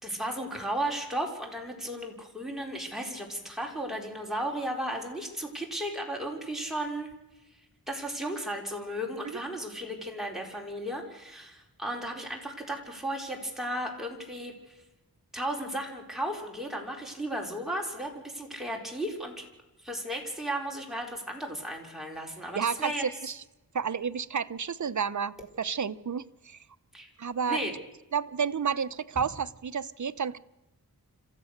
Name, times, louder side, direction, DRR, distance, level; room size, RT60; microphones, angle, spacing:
voice 1, 0.0-7.1 7.9-14.5 15.3-19.5 19.8-23.0 26.9-27.1 27.5-27.7, right 1 dB, ahead, 4.5 m, -35 dB
voice 2, 22.5-23.4 23.7-26.6 27.2-27.6 28.1-30.4, right 6 dB, 50° right, 0.7 m, -31 dB
26.5 x 15.0 x 6.6 m
wide cardioid pair, 85°, 38 cm